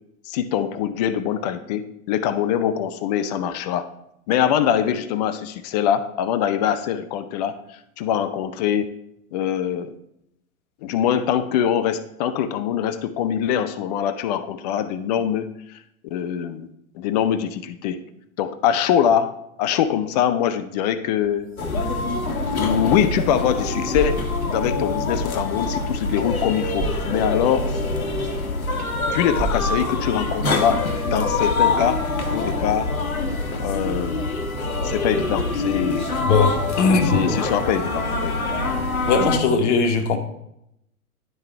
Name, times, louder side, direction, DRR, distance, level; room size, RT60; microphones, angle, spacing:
voice 1, 0.3-3.9 4.3-8.9 9.3-9.9 10.8-15.8 16.1-16.7 16.9-18.0 18.4-21.5 22.5-27.7 29.0-32.0 32.3-32.9 33.6-34.3 34.8-36.1 37.1-38.4, left 9 dB, 30° left, 13 dB, 0.5 m, -23 dB
sound 1, 21.2-23.6 23.9-28.9 29.4-30.1, right 2 dB, 30° right, 1.6 m, -34 dB
sound 2, 21.6-39.4, left 3 dB, 75° left, 1.2 m, -25 dB
voice 2, 36.2-37.2 39.1-40.2, left 4 dB, 55° left, 8 dB, 1.2 m, -19 dB
11.0 x 3.7 x 4.5 m, 0.79 s
figure-of-eight pair, 105°, 43 cm